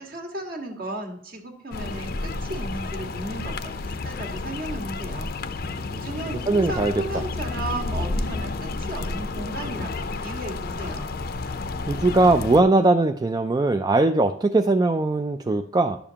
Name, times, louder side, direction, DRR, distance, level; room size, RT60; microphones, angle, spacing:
voice 1, 0.0-5.3 5.9-11.1, right 1 dB, 50° right, 1 dB, 1.7 m, -35 dB
sound 1, 1.7-12.6, left 3 dB, 55° left, 0.6 m, -31 dB
voice 2, 6.5-6.9 11.9-16.0, right 2 dB, 20° right, 6 dB, 0.3 m, -20 dB
11.5 x 6.9 x 2.8 m, 0.66 s
head